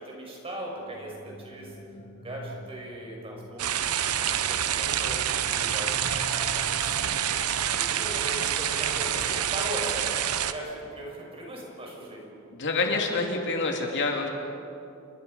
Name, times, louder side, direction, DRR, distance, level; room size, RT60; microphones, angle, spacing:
voice 1, 0.0-1.7 2.2-5.9 6.3-7.4 7.7-10.1 10.5-12.3, right 1 dB, 25° right, -1 dB, 5.9 m, -39 dB
sound 1, 0.8-12.6, left 1 dB, 35° left, 2.1 m, -47 dB
sound 2, 3.6-10.5, right 9 dB, 90° right, 1.0 m, -27 dB
voice 2, 12.5-14.3, left 3 dB, 55° left, 2 dB, 2.7 m, -27 dB
29.5 x 22.5 x 5.6 m, 2.6 s
head